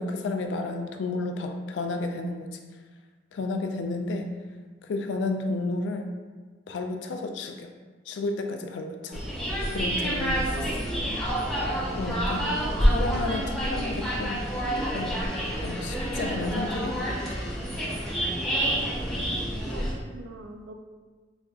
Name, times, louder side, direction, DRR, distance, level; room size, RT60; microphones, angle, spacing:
voice 1, 0.0-2.5 3.3-4.3 4.8-6.1 6.7-7.7 8.1-9.2 9.7-10.7 12.0-12.5 12.9-14.4 14.8-15.2 15.6-17.4, left 2 dB, 90° left, 5 dB, 0.3 m, -32 dB
sound 1, 9.1-19.9, equal, ahead, 0.6 m, -28 dB
voice 2, 12.3-13.5 19.6-20.7, right 2 dB, 85° right, 4 dB, 0.4 m, -43 dB
4.1 x 2.4 x 2.3 m, 1.4 s
head